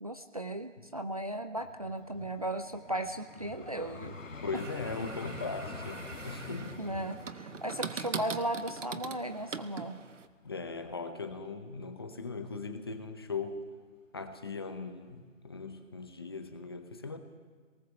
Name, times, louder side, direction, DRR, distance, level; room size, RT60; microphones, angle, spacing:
voice 1, 0.0-4.2 6.8-10.0, right 1 dB, 30° right, 8 dB, 0.5 m, -36 dB
Vehicle, 1.6-10.7 11.3-11.5, left 4 dB, 85° left, 1.9 m, -47 dB
voice 2, 4.4-6.8 10.4-13.6 14.1-17.2, left 4 dB, 20° left, 7 dB, 0.8 m, -39 dB
sound 1, 4.5-10.3, right 5 dB, 75° right, 1.2 m, -42 dB
21.0 x 19.0 x 7.0 m, 1.5 s
figure-of-eight pair, 165°, 38 cm